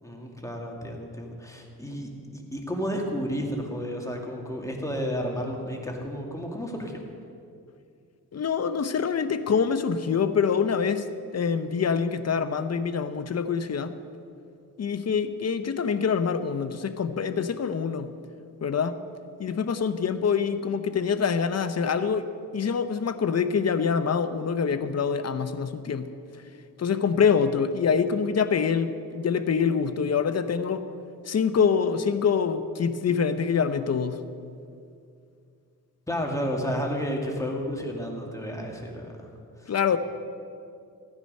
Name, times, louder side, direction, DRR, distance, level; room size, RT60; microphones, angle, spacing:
voice 1, 0.0-7.0 36.1-39.3 39.6-40.0, equal, 10° left, 0 dB, 2.2 m, -32 dB
voice 2, 8.3-13.9 14.8-18.1 18.6-19.0 19.4-26.1 26.8-30.8 31.3-34.2 39.7-40.0, left 6 dB, 45° left, 11 dB, 0.8 m, -25 dB
15.0 x 9.8 x 5.4 m, 2.4 s
cardioid pair, 80°, 37 cm